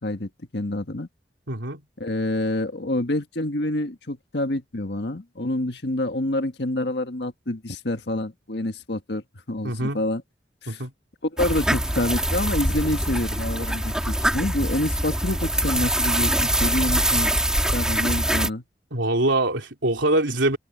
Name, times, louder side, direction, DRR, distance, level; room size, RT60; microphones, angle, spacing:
voice 1, 0.0-1.1 2.0-10.2 10.6-10.8 11.2-17.3 17.7-18.6, left 1 dB, 65° left, 1.6 m, -27 dB
voice 2, 1.5-1.8 9.6-10.0 10.7-10.9 18.9-20.6, right 2 dB, 90° right, 3.6 m, -23 dB
sound 1, 11.4-18.5, right 1 dB, 5° right, 3.0 m, -23 dB
head